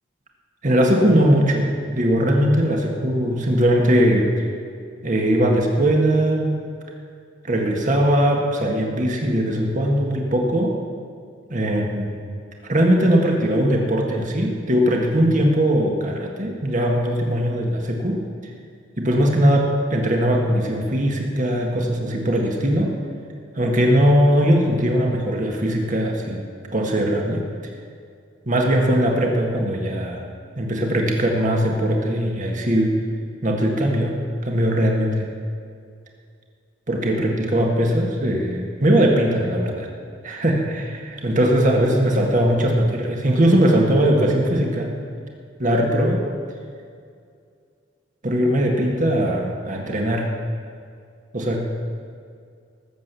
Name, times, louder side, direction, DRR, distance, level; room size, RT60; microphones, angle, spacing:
voice 1, 0.6-4.3 5.0-6.6 7.4-10.7 11.5-12.1 12.7-18.2 19.0-22.9 23.6-27.4 28.5-30.3 30.6-32.9 33.4-34.1 34.4-35.3 36.9-39.9 40.2-44.9 45.6-46.2 48.2-50.3 51.3-51.6, equal, 45° right, 0 dB, 1.8 m, -20 dB
19.0 x 7.9 x 6.9 m, 2.3 s
head